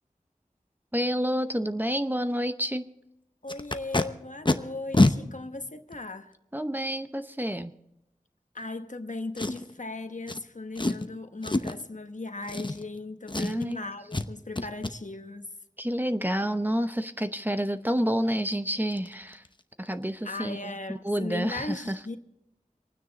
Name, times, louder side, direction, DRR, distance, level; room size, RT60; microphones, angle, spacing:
voice 1, 0.9-2.8 6.5-7.7 13.3-13.8 15.8-19.4 19.8-22.0, equal, 15° right, 0.7 m, -29 dB
voice 2, 3.4-6.4 8.5-15.5 20.2-22.2, left 2 dB, 60° left, 1.1 m, -37 dB
Packing tape duct tape, 3.5-4.0 4.4-4.5 4.9-5.1 5.9-6.0 9.4-9.8 10.3-10.4 10.7-11.1 11.4-11.8 12.4-13.0 13.3-13.7 14.1-14.3 14.5-14.9 18.0-18.1 18.4-18.5 18.9-19.1 19.3-19.6 19.8-19.9, left 2 dB, 35° left, 0.8 m, -26 dB
26.0 x 9.6 x 4.0 m
wide cardioid pair, 45°, 14 cm